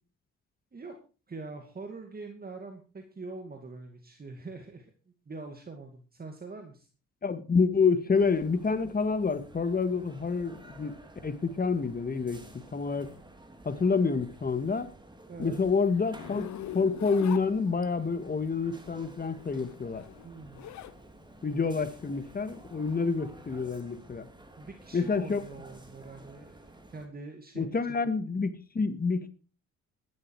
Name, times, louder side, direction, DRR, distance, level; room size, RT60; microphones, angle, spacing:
voice 1, 1.3-6.9 15.3-15.6 20.2-20.7 24.5-27.8, right 3 dB, 30° right, 2.4 m, -44 dB
voice 2, 7.2-11.0 11.2-13.1 13.7-14.9 15.4-16.5 16.7-20.0 21.4-24.3 24.9-25.4 27.6-29.3, left 4 dB, 30° left, 1.8 m, -28 dB
sound 1, 8.1-27.1, right 1 dB, 15° right, 3.0 m, -52 dB
Zipper (clothing), 16.1-18.1 19.3-21.0 21.4-23.8, left 12 dB, 70° left, 1.1 m, -43 dB
13.5 x 12.0 x 4.8 m
cardioid pair, 90°, 30 cm